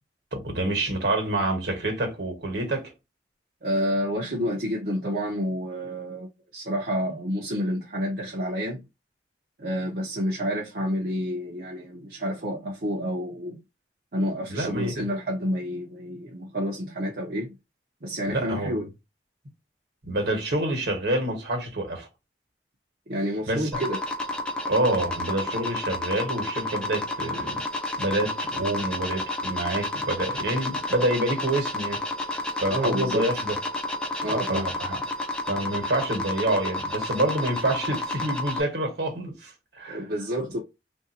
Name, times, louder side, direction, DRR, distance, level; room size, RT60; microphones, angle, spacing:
voice 1, 0.3-2.9 14.5-15.1 18.3-18.8 20.0-22.1 23.4-23.8 24.6-27.6 28.0-32.0 32.6-33.6 34.3-35.0 35.5-40.0, right 1 dB, 70° right, 1.3 m, -27 dB
voice 2, 3.6-8.8 9.6-13.6 14.1-17.6 18.0-18.9 23.1-24.0 32.7-33.3 34.2-34.7 39.9-40.6, equal, 55° right, 0.7 m, -29 dB
sound 1, 23.7-38.6, left 2 dB, 5° left, 0.5 m, -31 dB
3.3 x 2.6 x 2.7 m
head